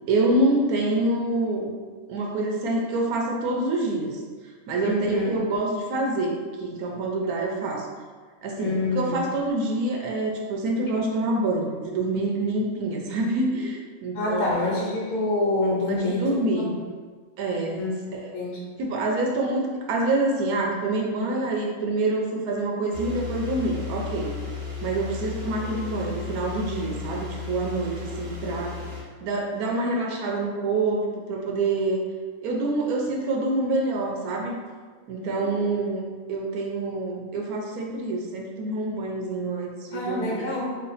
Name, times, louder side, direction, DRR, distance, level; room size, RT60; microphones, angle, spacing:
voice 1, 0.1-1.7 2.1-4.2 4.7-7.9 8.4-14.5 15.9-16.7 17.4-18.3 18.8-19.6 19.9-24.3 24.8-28.8 29.2-32.0 32.4-34.6 35.1-40.5, right 2 dB, 85° right, 0 dB, 1.1 m, -26 dB
voice 2, 4.8-5.3 8.6-9.2 14.1-16.8 17.8-17.9 18.3-18.7 35.4-35.5 39.9-40.8, left 2 dB, 80° left, -4 dB, 1.1 m, -27 dB
sound 1, 22.9-29.0, left 6 dB, 60° right, 1.3 m, -35 dB
3.2 x 2.1 x 3.9 m, 1.5 s
omnidirectional pair, 1.5 m